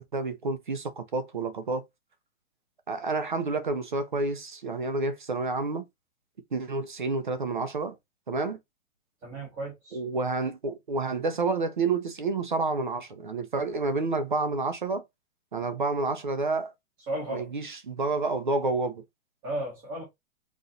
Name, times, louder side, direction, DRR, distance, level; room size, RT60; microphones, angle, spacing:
voice 1, 0.0-1.8 2.9-5.8 6.5-8.0 8.3-8.6 9.9-15.0 15.5-16.7 17.3-19.0, right 3 dB, 35° right, 0.5 m, -29 dB
voice 2, 9.2-10.0 17.1-17.5 19.4-20.0, right 1 dB, 5° right, 0.8 m, -34 dB
4.0 x 3.0 x 3.9 m
hypercardioid pair, 175°, 42 cm